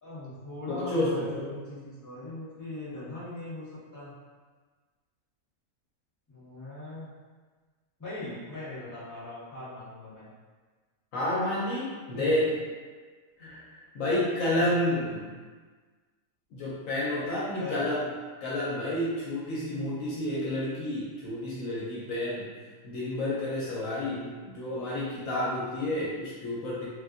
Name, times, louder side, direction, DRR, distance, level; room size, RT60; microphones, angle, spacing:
voice 1, 0.0-4.1 6.3-7.1 8.0-10.3 12.1-12.5 14.5-15.3 17.5-18.1, left 2 dB, 15° left, -11 dB, 1.2 m, -40 dB
voice 2, 0.8-1.5 11.1-12.5 13.4-13.6 13.9-15.2 16.5-18.0 18.4-22.5 22.8-26.8, left 1 dB, 70° left, -7 dB, 1.0 m, -30 dB
3.2 x 2.5 x 2.4 m, 1.4 s
omnidirectional pair, 1.5 m